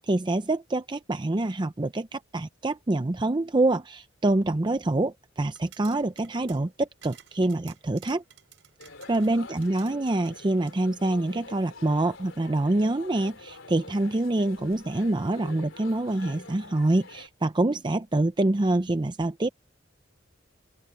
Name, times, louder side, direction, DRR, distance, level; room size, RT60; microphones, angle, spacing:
voice 1, 0.0-8.2 9.1-19.5, right 2 dB, 25° right, 0.5 m, -26 dB
sound 1, 5.5-10.8, right 10 dB, 75° right, 6.1 m, -54 dB
sound 2, 8.8-17.3, left 3 dB, 85° left, 3.3 m, -46 dB
open air
head